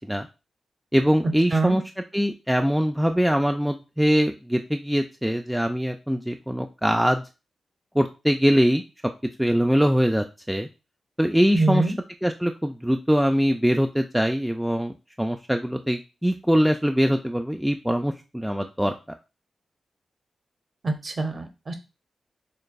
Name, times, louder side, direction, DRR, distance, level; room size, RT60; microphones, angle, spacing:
voice 1, 0.9-1.8 2.1-7.2 8.0-8.8 9.4-10.7 11.2-11.8 12.2-18.9, equal, 5° right, 4 dB, 0.3 m, -22 dB
voice 2, 11.5-11.9 20.8-21.8, right 2 dB, 45° right, 6 dB, 0.8 m, -24 dB
6.4 x 2.3 x 2.3 m, 0.29 s
wide cardioid pair, 90°, 0 cm